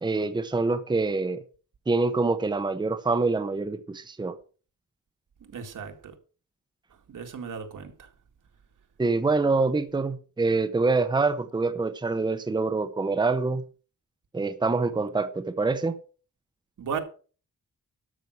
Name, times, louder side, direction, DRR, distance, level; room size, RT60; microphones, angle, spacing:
voice 1, 0.0-1.4 1.9-4.4 9.0-13.6 14.3-16.0, right 3 dB, 15° right, 0.8 m, -25 dB
voice 2, 5.5-6.1 7.1-7.9 16.8-17.0, right 6 dB, 75° right, 2.1 m, -35 dB
12.5 x 6.1 x 6.3 m
wide cardioid pair, 170°, 31 cm